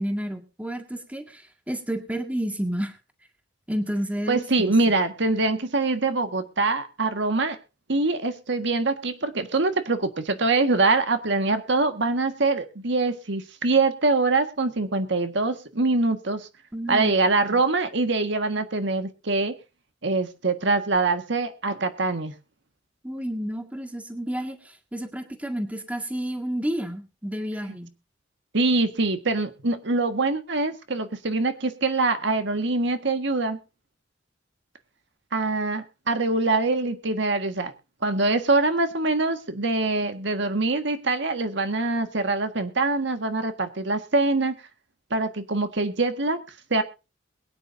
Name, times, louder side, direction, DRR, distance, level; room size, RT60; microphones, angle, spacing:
voice 1, 0.0-3.0 3.7-4.7 16.7-17.2 17.5-17.6 23.0-24.6 24.9-27.9, equal, 10° right, 6 dB, 1.8 m, -30 dB
voice 2, 4.3-7.6 7.9-16.5 16.9-19.5 20.0-22.3 28.5-33.6 35.3-37.7 38.0-44.6 45.1-46.4 46.7-46.8, right 3 dB, 70° right, 8 dB, 1.6 m, -24 dB
22.5 x 9.7 x 2.7 m, 0.29 s
head